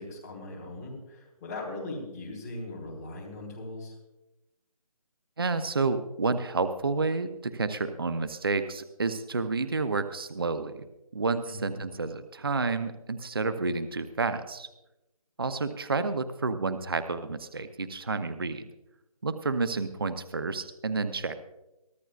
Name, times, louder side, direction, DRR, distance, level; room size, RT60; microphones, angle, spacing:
voice 1, 0.0-3.9 11.5-11.7, left 2 dB, 5° left, -4 dB, 1.2 m, -39 dB
voice 2, 5.4-10.9 11.1-14.7 15.4-18.7 19.2-21.5, right 3 dB, 40° right, 11 dB, 0.6 m, -30 dB
23.0 x 13.5 x 2.4 m, 0.95 s
figure-of-eight pair, 175°, 19 cm